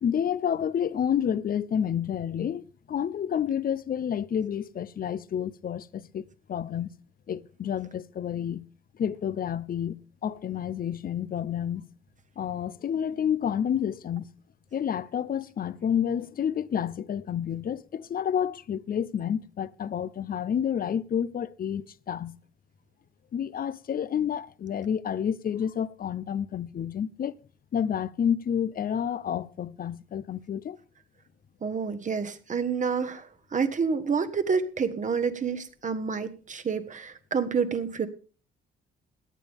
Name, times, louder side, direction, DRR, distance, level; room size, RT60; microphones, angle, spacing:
voice 1, 0.0-6.2 6.5-6.9 7.3-8.7 9.0-11.9 12.4-14.2 14.7-22.4 23.3-27.4 27.7-30.8, left 8 dB, 45° left, 0.7 m, -29 dB
voice 2, 31.6-38.1, right 5 dB, 40° right, 1.5 m, -28 dB
17.5 x 11.0 x 3.6 m
cardioid pair, 90°, 20 cm